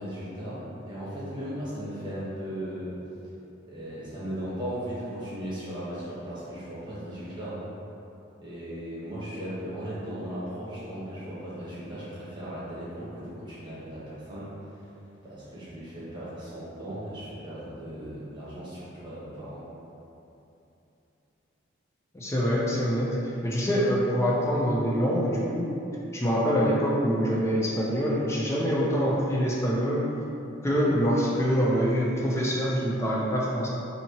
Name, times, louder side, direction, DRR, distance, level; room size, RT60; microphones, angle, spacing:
voice 1, 0.0-3.0 3.6-7.6 8.4-14.5 15.2-19.6, equal, 25° right, -10 dB, 1.1 m, -37 dB
voice 2, 22.1-23.2 23.4-25.7 26.1-30.2 30.6-33.7, equal, 15° left, -4 dB, 0.4 m, -25 dB
4.1 x 2.7 x 2.8 m, 2.8 s
head